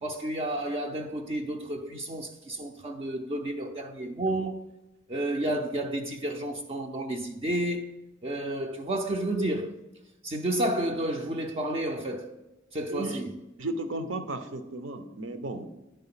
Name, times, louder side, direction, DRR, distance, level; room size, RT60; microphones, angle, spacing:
voice 1, 0.0-4.7 5.1-7.9 8.2-9.8 10.2-12.4 12.7-13.3, right 1 dB, 30° right, 0.5 m, -31 dB
voice 2, 12.9-13.2 13.6-15.6, right 2 dB, 65° right, 0.8 m, -34 dB
10.0 x 4.0 x 5.7 m
head